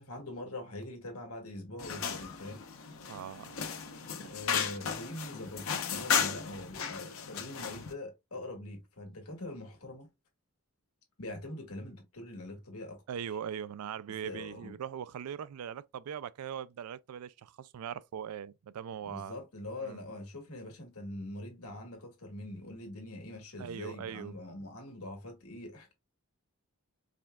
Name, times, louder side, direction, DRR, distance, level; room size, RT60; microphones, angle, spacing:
voice 1, 0.0-2.6 4.0-10.1 11.2-13.0 14.2-14.8 19.0-25.9, left 1 dB, 85° left, 1.7 m, -43 dB
sound 1, 1.8-7.9, left 7 dB, 65° left, 0.8 m, -35 dB
voice 2, 3.1-3.6 13.1-19.4 19.8-20.0 23.6-24.3, right 8 dB, 90° right, 0.4 m, -40 dB
5.0 x 3.5 x 2.3 m
head